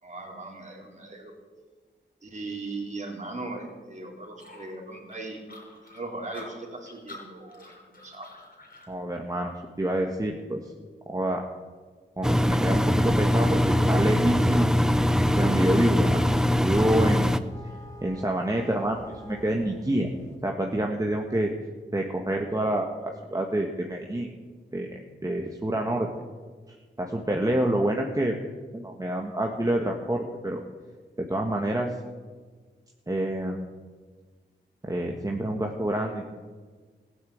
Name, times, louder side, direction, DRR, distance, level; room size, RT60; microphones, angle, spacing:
voice 1, 0.0-1.3 2.2-5.4 5.8-8.3, right 2 dB, 40° right, 0 dB, 4.0 m, -38 dB
sound 1, 4.4-8.9, left 2 dB, 50° left, 6.1 m, -47 dB
voice 2, 8.9-10.7 11.1-11.4 12.2-14.7 15.3-16.2 16.6-17.4 18.0-20.1 20.4-21.5 21.9-24.3 24.7-26.1 27.0-28.4 28.7-30.6 31.2-31.9 33.1-33.7 34.8-36.4, right 1 dB, 20° right, 1 dB, 1.6 m, -27 dB
Engine, 12.2-17.4, left 1 dB, 5° right, 0.7 m, -22 dB
sound 2, 14.3-20.4, equal, 15° left, 3.9 m, -48 dB
15.0 x 9.7 x 8.7 m, 1.4 s
cardioid pair, 65°, 19 cm